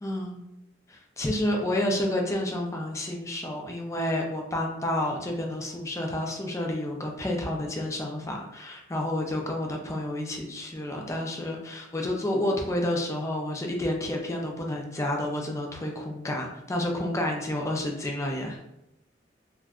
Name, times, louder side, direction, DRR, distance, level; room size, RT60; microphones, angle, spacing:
voice 1, 0.0-0.4 0.9-18.6, left 1 dB, 15° left, 1 dB, 0.4 m, -30 dB
2.5 x 2.2 x 3.5 m, 0.86 s
head